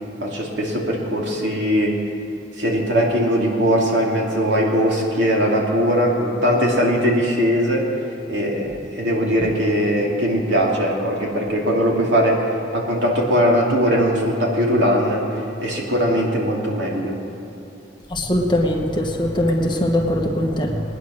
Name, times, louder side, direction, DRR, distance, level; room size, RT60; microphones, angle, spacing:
voice 1, 0.2-2.0 2.6-7.9 8.3-12.4 12.7-15.2 15.6-17.2, equal, 75° right, -2 dB, 2.8 m, -20 dB
voice 2, 18.1-20.8, left 1 dB, 25° left, 1 dB, 1.2 m, -21 dB
21.0 x 9.9 x 6.3 m, 3.0 s
head